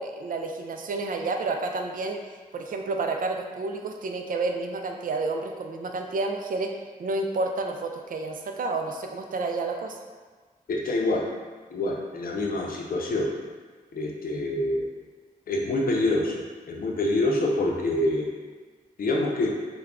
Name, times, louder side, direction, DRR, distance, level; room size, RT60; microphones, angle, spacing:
voice 1, 0.0-2.2 2.5-6.7 7.0-10.0, right 3 dB, 65° right, 3 dB, 0.4 m, -30 dB
voice 2, 10.7-11.3 11.7-13.3 13.9-14.9 15.5-16.4 16.7-18.3 19.0-19.6, left 2 dB, 75° left, -1 dB, 0.6 m, -26 dB
3.4 x 2.2 x 3.6 m, 1.4 s
wide cardioid pair, 110°, 15 cm